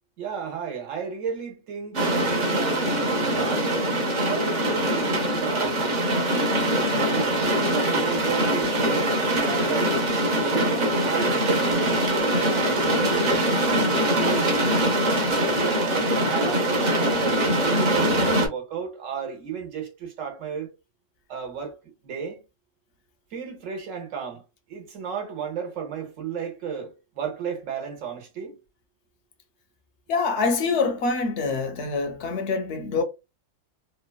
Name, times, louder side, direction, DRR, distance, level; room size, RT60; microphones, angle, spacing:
voice 1, 0.2-3.7 4.3-6.0 6.9-10.0 10.5-14.7 15.6-20.7 21.3-22.4 23.3-24.4 24.7-28.6, right 6 dB, 75° right, 1.2 m, -33 dB
sound 1, 1.9-18.5, right 1 dB, 45° right, 0.6 m, -23 dB
voice 2, 30.1-33.0, left 4 dB, 70° left, 0.8 m, -25 dB
2.9 x 2.2 x 2.2 m
omnidirectional pair, 1.3 m